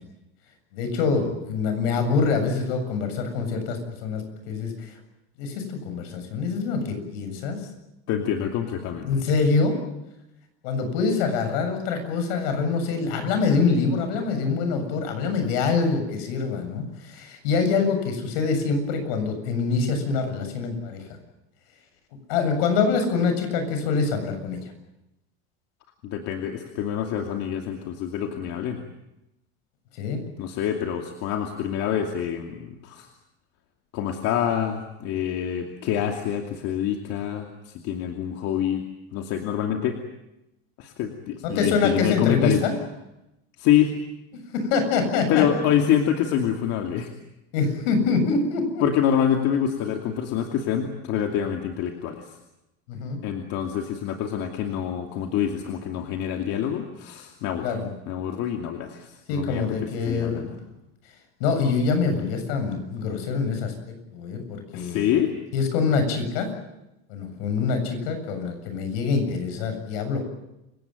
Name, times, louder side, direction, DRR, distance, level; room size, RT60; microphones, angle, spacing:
voice 1, 0.7-4.7 5.4-7.6 9.0-9.8 10.6-21.0 22.3-24.6 30.0-30.2 41.4-42.8 44.5-45.4 47.5-48.8 52.9-53.2 57.6-57.9 59.3-60.6 61.4-65.1 65.5-66.5 67.1-70.2, left 4 dB, 80° left, 7 dB, 7.5 m, -25 dB
voice 2, 8.1-9.1 26.0-28.8 30.4-33.1 33.9-38.8 39.1-40.0 40.8-42.6 43.6-43.9 45.3-47.1 48.8-52.3 53.2-57.8 58.1-60.4 64.7-65.3, left 9 dB, 55° left, 3 dB, 2.7 m, -26 dB
28.5 x 17.5 x 9.2 m, 0.92 s
supercardioid pair, 135°, 29 cm